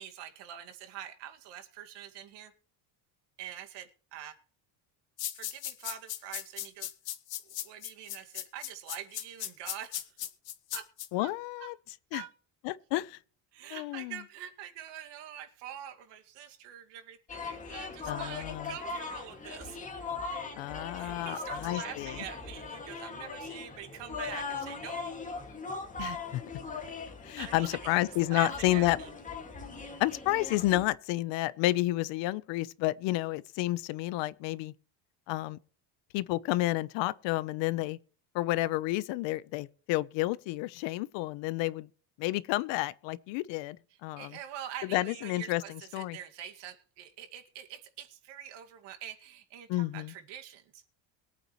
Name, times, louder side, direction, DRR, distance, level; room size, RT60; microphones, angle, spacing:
voice 1, 0.0-2.5 3.4-4.4 5.3-6.9 7.5-10.2 10.7-10.9 11.2-11.3 11.6-11.7 12.1-12.3 13.5-19.8 20.9-25.0 27.4-28.0 28.3-29.1 44.2-50.8, right 10 dB, 70° right, 2.3 m, -45 dB
sound 1, 5.2-11.1, left 13 dB, 55° left, 1.9 m, -37 dB
voice 2, 11.1-11.7 12.1-12.2 12.6-13.2 13.7-14.2 18.1-18.7 20.6-22.2 26.0-26.4 27.2-29.0 30.0-34.7 35.3-35.6 36.1-38.0 38.3-41.9 42.2-43.8 44.0-44.4 44.9-46.2 49.7-50.1, left 17 dB, 85° left, 1.0 m, -30 dB
sound 2, 17.3-30.9, left 4 dB, 15° left, 2.2 m, -40 dB
23.0 x 8.9 x 3.2 m
cardioid pair, 155°, 43 cm